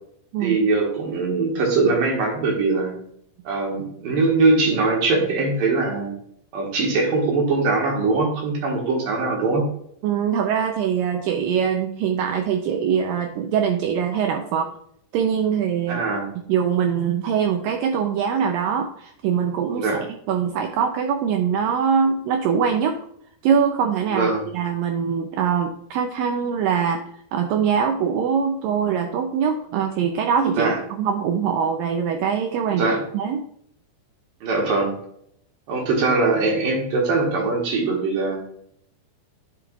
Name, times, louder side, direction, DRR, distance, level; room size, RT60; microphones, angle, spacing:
voice 1, 0.4-3.0 3.4-6.2 6.5-9.6 15.9-16.3 19.7-20.0 24.1-24.4 30.6-30.8 32.7-33.0 34.4-35.0 35.7-38.4, right 3 dB, 65° right, 0 dB, 2.9 m, -21 dB
voice 2, 10.0-14.7 15.1-16.1 16.5-23.0 23.4-27.0 27.3-33.4, right 7 dB, 90° right, 4 dB, 1.9 m, -23 dB
10.0 x 5.6 x 2.4 m, 0.69 s
omnidirectional pair, 4.7 m